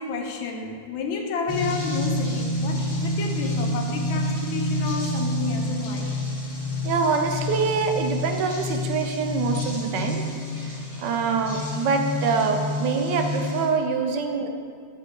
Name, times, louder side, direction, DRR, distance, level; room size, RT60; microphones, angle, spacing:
voice 1, 0.0-6.1, left 4 dB, 85° left, 3 dB, 1.6 m, -30 dB
sound 1, 1.5-13.7, left 1 dB, 30° left, 0.7 m, -28 dB
voice 2, 5.7-6.1 6.8-10.2 10.7-14.5, right 5 dB, 70° right, 4 dB, 1.2 m, -25 dB
9.4 x 6.8 x 2.9 m, 2.1 s
omnidirectional pair, 2.1 m